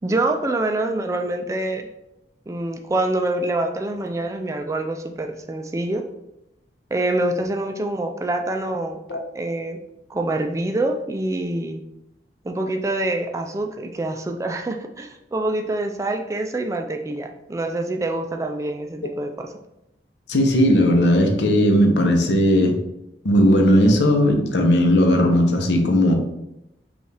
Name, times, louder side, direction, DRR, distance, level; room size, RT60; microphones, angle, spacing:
voice 1, 0.0-1.9 2.5-6.0 6.9-9.0 9.3-9.8 10.1-11.8 12.4-19.5, right 2 dB, 20° right, 4 dB, 0.3 m, -25 dB
voice 2, 20.3-22.8 23.2-26.1, equal, 80° left, 3 dB, 0.8 m, -17 dB
5.1 x 2.4 x 3.3 m, 0.87 s
head